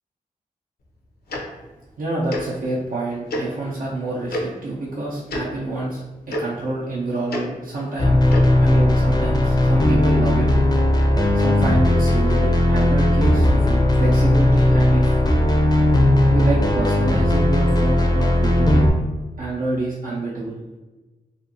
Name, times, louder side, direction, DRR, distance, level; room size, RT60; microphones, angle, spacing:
Tick-tock, 1.3-1.4 2.3-2.4 3.3-3.4 4.3-4.4 5.3-5.4 6.3-6.4 7.3-7.4 8.3-8.5, left 1 dB, 85° left, 0.5 m, -26 dB
voice 1, 2.0-8.2 8.6-10.5 11.3-15.2 16.3-18.8 19.4-20.6, right 2 dB, 65° right, -7 dB, 0.6 m, -27 dB
sound 1, 8.0-18.9, left 1 dB, 25° left, 0.4 m, -17 dB
2.5 x 2.5 x 2.6 m, 1.2 s
cardioid pair, 60°, 16 cm